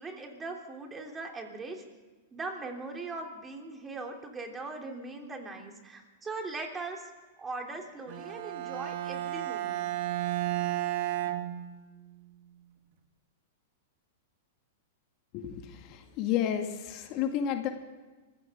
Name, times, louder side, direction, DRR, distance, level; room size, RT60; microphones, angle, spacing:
voice 1, 0.0-1.8 2.3-7.0 7.4-9.9, right 3 dB, 15° right, 2 dB, 3.3 m, -40 dB
Bowed string instrument, 8.1-12.2, right 14 dB, 60° right, 1.6 m, -33 dB
voice 2, 15.3-17.7, left 9 dB, 45° left, 5 dB, 2.0 m, -31 dB
25.0 x 15.5 x 3.8 m, 1.3 s
hypercardioid pair, 110°, 0 cm